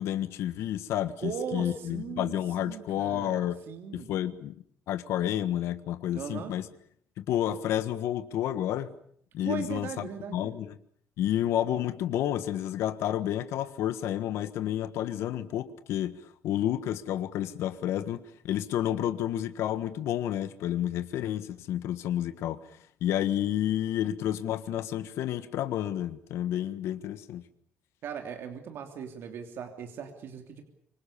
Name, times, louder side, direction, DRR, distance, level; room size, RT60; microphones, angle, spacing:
voice 1, 0.0-3.6 3.9-4.6 4.9-6.7 7.2-8.9 9.3-10.7 11.2-16.2 16.4-22.6 23.0-27.4, left 11 dB, 80° left, 12 dB, 1.4 m, -30 dB
voice 2, 1.2-4.1 6.1-6.5 9.4-10.6 28.0-30.6, right 7 dB, 60° right, 5 dB, 3.1 m, -38 dB
25.5 x 25.5 x 6.9 m, 0.62 s
cardioid pair, 165°, 5 cm